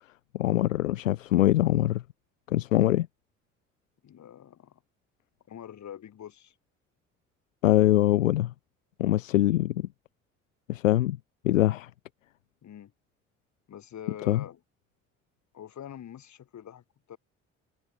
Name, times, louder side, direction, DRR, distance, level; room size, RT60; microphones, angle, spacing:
voice 1, 0.3-2.0 2.5-3.1 7.6-8.5 9.0-9.9 10.7-11.2 11.4-11.9 14.3-14.4, left 14 dB, 80° left, 0.5 m, -23 dB
voice 2, 4.0-4.8 5.5-6.5 12.6-12.9 13.7-14.6 15.5-17.2, left 10 dB, 45° left, 5.0 m, -45 dB
figure-of-eight pair, 45°, 38 cm